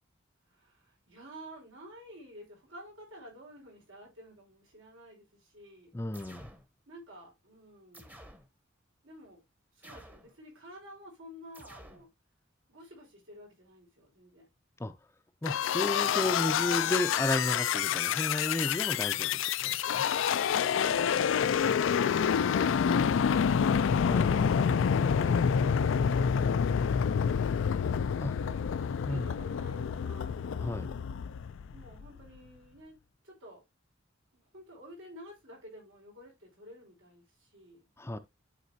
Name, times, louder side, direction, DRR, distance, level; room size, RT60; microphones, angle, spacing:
voice 1, 0.5-5.9 6.9-8.2 9.0-9.4 9.7-12.1 12.7-14.5 20.4-23.7 25.0-27.5 28.3-30.4 31.7-33.0 33.2-33.6 34.3-37.8, equal, 85° right, 4.5 m, -51 dB
voice 2, 5.9-6.5 14.8-14.9 15.4-20.1 23.9-24.3 28.2-28.3 29.0-29.2 30.6-30.9 38.0-38.2, left 1 dB, 15° left, 0.5 m, -33 dB
sound 1, 6.1-6.7 7.9-8.5 9.8-10.3 11.5-12.1, equal, 10° right, 0.8 m, -51 dB
sound 2, 15.4-32.1, left 7 dB, 70° left, 0.3 m, -28 dB
11.0 x 4.1 x 2.7 m
head